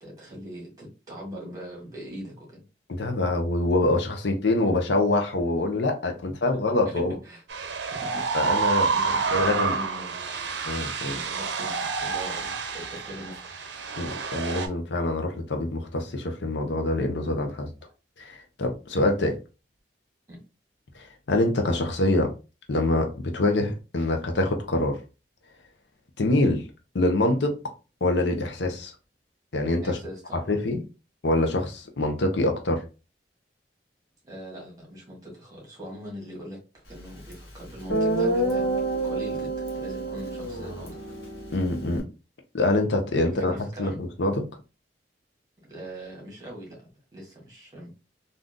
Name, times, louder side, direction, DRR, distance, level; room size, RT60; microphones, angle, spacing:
voice 1, 0.0-2.6 6.2-6.3 6.7-7.6 8.0-8.6 8.9-10.5 11.0-13.7 20.3-20.4 29.8-30.5 34.2-41.0 43.2-44.0 45.7-48.0, equal, 20° right, 1.6 m, -41 dB
voice 2, 2.9-7.1 8.3-9.7 10.7-11.2 14.0-17.7 18.2-19.4 20.9-22.3 22.7-25.0 26.2-26.7 26.9-27.6 28.0-28.9 29.5-30.0 30.5-30.8 31.2-32.8 41.5-42.0 42.5-43.5 43.8-44.4, left 2 dB, 75° left, 0.7 m, -25 dB
sound 1, 7.5-14.7, right 5 dB, 80° right, 0.6 m, -28 dB
Guitar, 37.3-37.4 37.9-42.0, right 2 dB, 60° left, 1.1 m, -28 dB
3.6 x 2.6 x 2.5 m
head